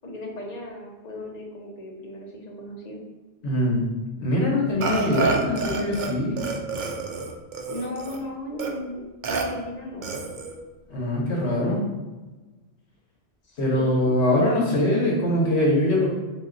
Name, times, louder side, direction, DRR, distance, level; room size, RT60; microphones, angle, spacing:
voice 1, 0.0-3.0 7.7-10.2 13.4-14.1, left 1 dB, 40° left, -1 dB, 0.7 m, -36 dB
voice 2, 3.4-3.8 4.2-6.4 10.9-11.8 13.6-16.1, left 1 dB, 70° left, -2 dB, 1.3 m, -22 dB
Burping eructation, 4.8-6.1 6.4-8.2 8.6-8.7 9.2-9.4 10.0-10.6, right 4 dB, 55° right, 0.6 m, -28 dB
3.8 x 2.6 x 3.9 m, 1.2 s
omnidirectional pair, 1.2 m